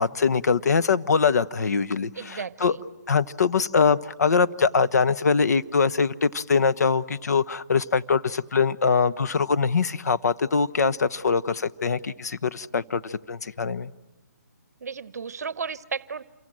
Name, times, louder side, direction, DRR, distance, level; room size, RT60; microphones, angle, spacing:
voice 1, 0.0-2.8 3.1-13.9, left 5 dB, 65° left, 15 dB, 1.0 m, -23 dB
voice 2, 2.1-2.8 14.8-16.2, right 5 dB, 60° right, 17 dB, 0.8 m, -34 dB
28.0 x 23.5 x 7.6 m, 1.0 s
hypercardioid pair, 160°, 10 cm